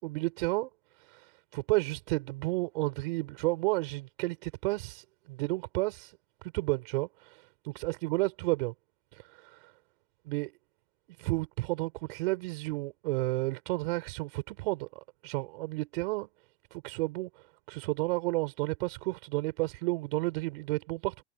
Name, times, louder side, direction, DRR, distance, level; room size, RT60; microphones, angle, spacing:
voice 1, 0.0-8.7 9.1-9.7 10.2-10.5 11.2-14.9 15.2-16.3 16.7-21.2, right 23 dB, 60° right, 4.8 m, -32 dB
hypercardioid pair, 110°, 33 cm